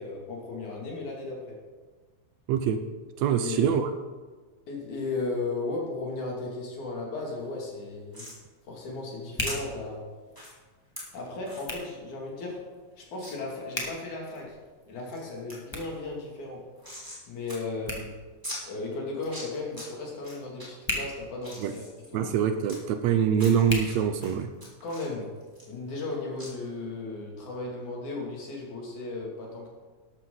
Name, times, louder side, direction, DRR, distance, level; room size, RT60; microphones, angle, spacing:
voice 1, 0.0-1.6 3.4-3.7 4.7-8.3 8.7-10.0 11.1-12.6 13.0-14.6 14.9-16.6 17.3-18.1 18.7-21.8 22.1-22.3 24.8-25.3 25.6-29.7, left 3 dB, 75° left, -1 dB, 4.0 m, -35 dB
voice 2, 2.5-2.8 3.2-3.9 21.6-21.7 22.1-24.5, right 8 dB, 75° right, 9 dB, 1.8 m, -24 dB
Hands, 7.1-24.8, left 1 dB, 10° left, 1.4 m, -42 dB
sound 1, 8.1-8.4 9.5-9.6 10.3-10.5 11.0-11.1 11.5-11.7 12.1-12.2 12.4-12.5 13.2-13.3 13.8-14.4 14.8-15.2 15.5-15.6 15.9-17.2 17.5-17.6 17.9-18.0 18.4-18.6 19.1-19.9 20.2-20.7 21.1-22.8 23.3-23.9 24.2-26.1 26.4-26.5, left 1 dB, 5° right, 3.2 m, -41 dB
12.5 x 12.5 x 4.0 m, 1.4 s
omnidirectional pair, 3.5 m